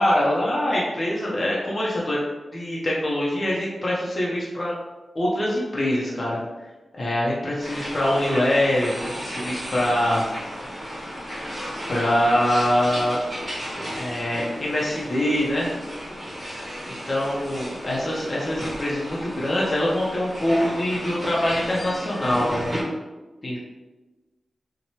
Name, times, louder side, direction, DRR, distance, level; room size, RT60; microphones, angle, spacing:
voice 1, 0.0-2.2 2.5-4.8 5.1-6.4 7.0-10.2 11.3-11.6 11.9-13.2 14.0-15.7 16.9-22.7 23.4-23.6, left 1 dB, 40° left, -5 dB, 0.6 m, -24 dB
sound 1, 7.6-22.8, equal, 35° right, 1.1 m, -34 dB
2.7 x 2.1 x 2.9 m, 1.2 s
wide cardioid pair, 75°, 0 cm